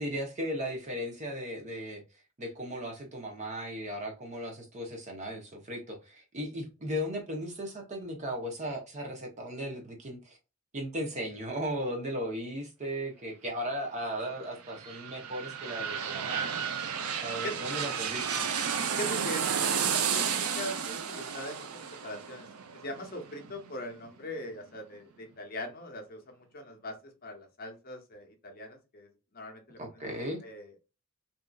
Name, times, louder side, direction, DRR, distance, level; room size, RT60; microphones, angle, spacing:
voice 1, 0.0-2.0 2.4-10.4 10.7-16.5 17.2-18.4 29.8-30.4, equal, 35° right, 1 dB, 0.7 m, -36 dB
sound 1, 14.4-24.1 24.5-24.6, right 7 dB, 80° right, 0.5 m, -32 dB
voice 2, 18.9-22.5 22.7-30.0 30.4-30.7, left 1 dB, 45° left, 3 dB, 0.8 m, -41 dB
2.7 x 2.5 x 2.2 m, 0.30 s
head